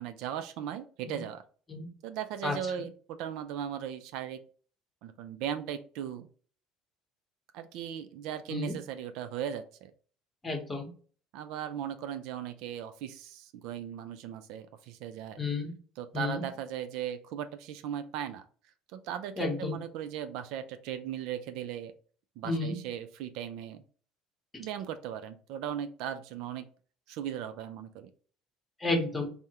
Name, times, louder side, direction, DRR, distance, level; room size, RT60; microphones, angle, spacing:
voice 1, 0.0-1.4 2.0-4.4 5.0-6.3 7.5-9.9 11.3-15.4 16.0-18.4 18.9-21.9 22.4-23.8 24.6-26.7 27.1-28.1, right 9 dB, 75° right, 10 dB, 0.3 m, -38 dB
voice 2, 10.4-10.9 15.4-15.7 16.1-16.4 19.4-19.8 22.4-22.8 28.8-29.3, left 3 dB, 15° left, 2 dB, 0.9 m, -31 dB
3.5 x 2.1 x 2.8 m, 0.42 s
cardioid pair, 115°, 0 cm